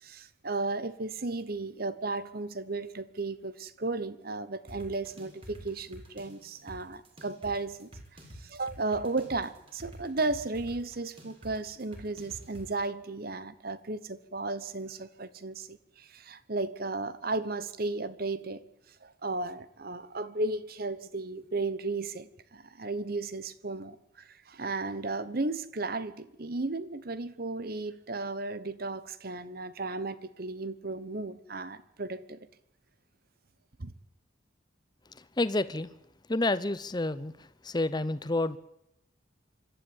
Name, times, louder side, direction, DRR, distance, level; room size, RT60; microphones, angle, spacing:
voice 1, 0.0-7.9 8.4-18.6 19.0-32.4 33.8-33.9, right 3 dB, 50° right, 1.1 m, -34 dB
sound 1, 4.7-12.7, equal, 30° right, 4.5 m, -48 dB
voice 2, 35.4-35.9 36.3-38.6, left 2 dB, 20° left, 0.7 m, -29 dB
25.5 x 12.5 x 8.9 m
head